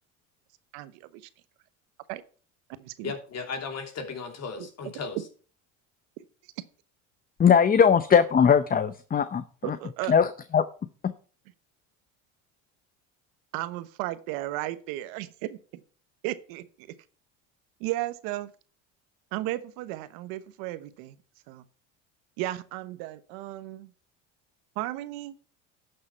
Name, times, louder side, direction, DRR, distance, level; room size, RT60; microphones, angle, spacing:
voice 1, 0.7-1.3 2.1-2.2 2.8-3.1 4.6-4.7 9.6-10.1 13.5-15.6 16.2-16.9 17.8-18.5 19.3-21.2 21.5-21.6 22.4-23.9 24.8-25.3, right 16 dB, 75° right, 1.0 m, -34 dB
voice 2, 3.0-5.2, left 5 dB, 45° left, 2.8 m, -35 dB
voice 3, 7.4-9.4 10.1-10.3 10.5-10.6, left 7 dB, 25° left, 0.6 m, -19 dB
12.0 x 6.7 x 4.5 m
supercardioid pair, 90°, 37 cm